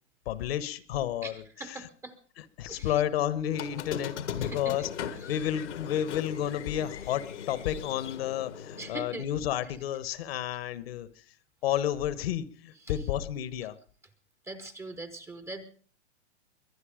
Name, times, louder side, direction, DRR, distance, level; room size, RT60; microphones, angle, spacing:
voice 1, 0.3-1.9 2.4-4.9 5.3-11.1 11.6-13.8, left 11 dB, 60° left, 15 dB, 1.3 m, -31 dB
voice 2, 1.2-2.2 2.6-3.1 4.0-4.1 4.4-4.9 5.2-5.5 8.8-9.3 9.6-9.7 12.7-13.1 14.5-15.7, right 2 dB, 5° right, 11 dB, 0.7 m, -42 dB
Squeak, 3.5-8.9, left 8 dB, 75° left, 1.7 m, -39 dB
22.5 x 9.7 x 5.0 m, 0.43 s
hypercardioid pair, 145°, 35 cm